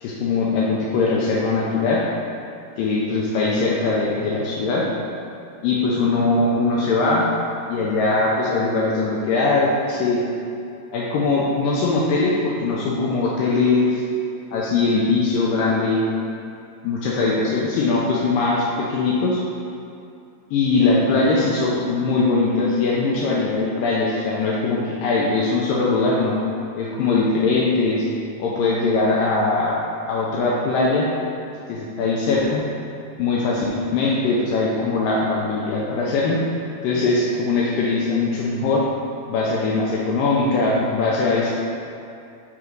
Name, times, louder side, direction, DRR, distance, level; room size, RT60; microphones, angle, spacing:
voice 1, 0.0-2.1 2.8-4.8 5.6-7.3 7.7-10.2 10.9-14.0 14.5-16.0 16.8-19.4 20.5-26.3 26.8-28.0 28.4-29.8 30.1-31.1 31.7-32.6 33.2-36.4 36.8-38.8 39.3-41.6, left 3 dB, 85° left, -4 dB, 2.0 m, -21 dB
8.5 x 3.8 x 4.6 m, 2.6 s
omnidirectional pair, 4.7 m